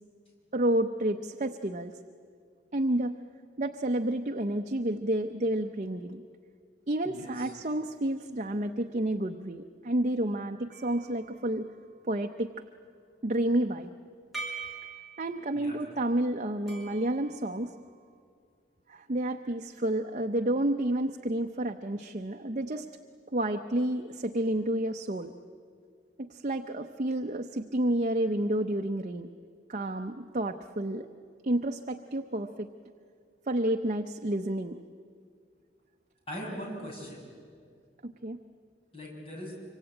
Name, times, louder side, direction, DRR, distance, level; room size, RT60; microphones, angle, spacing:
voice 1, 0.5-2.0 2.7-3.1 3.6-6.2 6.9-11.7 12.0-12.5 13.2-13.9 15.2-17.7 18.9-22.9 23.3-25.3 26.2-29.3 29.7-31.1 31.4-32.7 33.5-34.8 38.0-38.4, right 1 dB, 40° right, 5 dB, 0.8 m, -30 dB
voice 2, 7.0-7.5 15.5-15.7 36.3-37.3 38.9-39.5, equal, 30° left, -2 dB, 6.6 m, -40 dB
sound 1, 10.7-12.4 14.3-15.6 16.7-18.2, right 4 dB, ahead, 5.1 m, -44 dB
25.0 x 25.0 x 9.0 m, 2.2 s
head